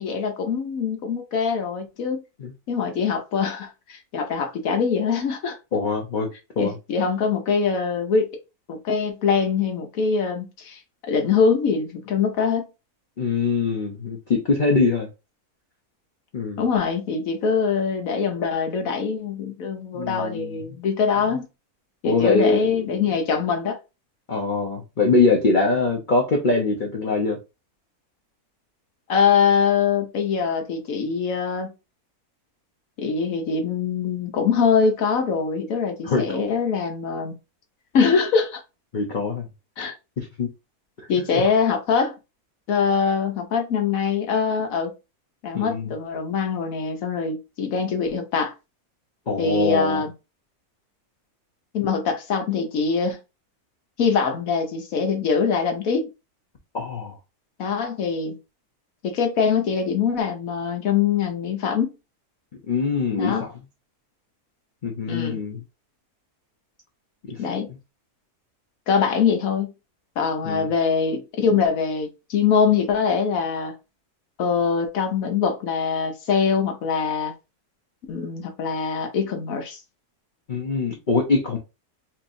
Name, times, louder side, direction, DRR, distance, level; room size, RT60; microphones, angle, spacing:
voice 1, 0.0-2.2 2.7-5.6 6.6-8.3 8.7-12.7 16.6-21.5 22.0-23.8 29.1-31.7 33.0-37.3 37.9-38.6 39.8-39.9 41.1-42.2 42.7-44.9 45.4-48.5 49.4-50.1 51.7-53.2 54.0-56.1 57.6-58.4 59.0-61.9 63.2-63.4 65.1-65.4 67.4-67.7 68.9-69.7 70.2-73.7 74.4-77.3 78.1-79.8, left 6 dB, 65° left, 1.2 m, -23 dB
voice 2, 5.7-6.3 6.6-6.8 13.2-15.1 16.3-16.6 19.9-20.6 22.0-23.0 24.3-27.4 36.0-36.4 38.9-39.5 40.2-40.5 41.0-41.1 41.3-41.4 45.5-45.9 49.3-50.0 56.7-57.1 62.7-63.5 64.8-65.6 67.3-67.8 70.4-70.7 80.5-81.6, left 4 dB, 45° left, 0.7 m, -23 dB
4.4 x 2.7 x 2.6 m
omnidirectional pair, 1.6 m